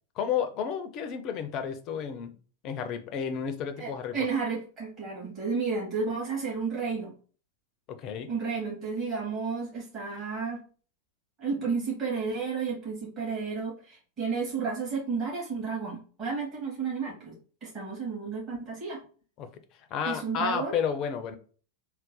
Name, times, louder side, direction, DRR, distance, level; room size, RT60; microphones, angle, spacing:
voice 1, 0.2-2.3 2.6-4.1 7.9-8.3 19.4-19.5 19.9-21.4, left 7 dB, 35° left, 0.6 m, -31 dB
voice 2, 3.8-7.1 8.3-10.6 11.4-17.3 17.6-19.0 20.0-20.7, right 5 dB, 30° right, 2.0 m, -32 dB
3.8 x 2.1 x 4.0 m
figure-of-eight pair, 90°, 0 cm